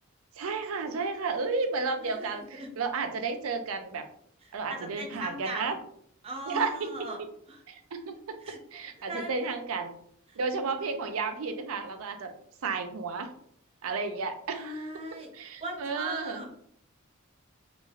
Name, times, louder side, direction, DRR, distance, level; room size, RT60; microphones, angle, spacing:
voice 1, 0.4-4.0 4.5-5.8 6.5-6.9 7.7-8.4 8.7-9.9 10.4-12.3 12.6-13.3 13.8-14.8 15.3-16.5, right 4 dB, 80° right, 7 dB, 0.5 m, -32 dB
voice 2, 2.1-2.7 4.5-5.7 6.2-7.2 7.5-7.6 8.4-8.6 9.0-9.3 14.5-15.3 15.6-16.5, right 1 dB, 30° right, 2 dB, 0.5 m, -39 dB
3.2 x 2.3 x 2.3 m, 0.65 s
head